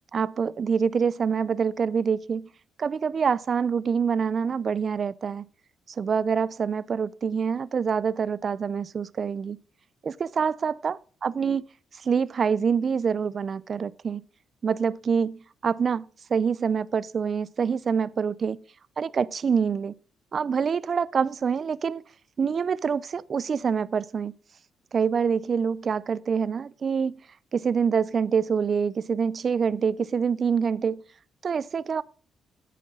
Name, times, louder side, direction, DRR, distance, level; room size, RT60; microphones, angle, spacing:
voice 1, 0.1-2.5 2.8-5.4 5.9-9.6 10.0-11.7 11.9-14.2 14.6-18.6 19.0-19.9 20.3-22.0 22.4-24.3 24.9-27.2 27.5-31.0 31.4-32.0, right 6 dB, 45° right, 0.4 m, -26 dB
10.0 x 8.5 x 3.7 m
cardioid pair, 90°, 0 cm